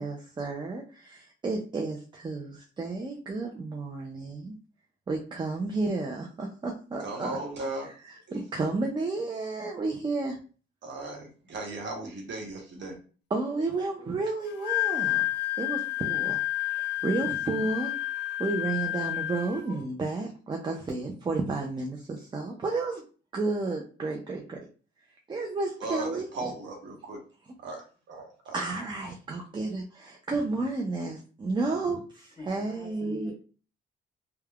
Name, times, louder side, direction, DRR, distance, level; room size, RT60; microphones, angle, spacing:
voice 1, 0.0-4.6 5.1-7.4 8.3-10.4 13.3-15.3 15.6-18.0 18.4-23.0 23.3-24.7 25.3-26.5 28.5-33.3, right 3 dB, 25° right, 1 dB, 0.5 m, -32 dB
voice 2, 7.0-8.0 10.8-12.9 25.8-27.2 27.6-28.6, right 2 dB, 65° right, 0 dB, 1.0 m, -37 dB
Wind instrument woodwind instrument, 14.5-19.8, left 15 dB, 60° left, 0.6 m, -30 dB
voice 3, 32.4-33.3, left 2 dB, 30° left, -2 dB, 1.3 m, -44 dB
3.2 x 2.2 x 2.3 m, 0.38 s
cardioid pair, 90°, 20 cm